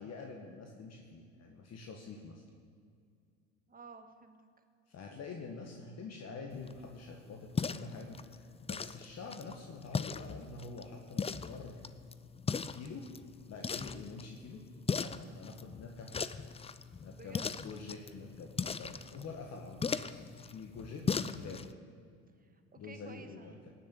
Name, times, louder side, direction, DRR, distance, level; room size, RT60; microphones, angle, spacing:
voice 1, 0.0-2.4 4.9-11.9 12.7-13.0 13.5-14.6 14.9-16.3 17.0-21.6 22.8-23.7, left 4 dB, 45° left, 1 dB, 1.9 m, -47 dB
voice 2, 3.7-4.4 13.7-14.0 17.1-17.5 22.3-23.6, right 4 dB, 25° right, 7 dB, 1.9 m, -53 dB
sound 1, 6.5-21.7, left 5 dB, 15° left, 0.6 m, -39 dB
19.0 x 7.3 x 8.5 m, 2.2 s
hypercardioid pair, 70°, 36 cm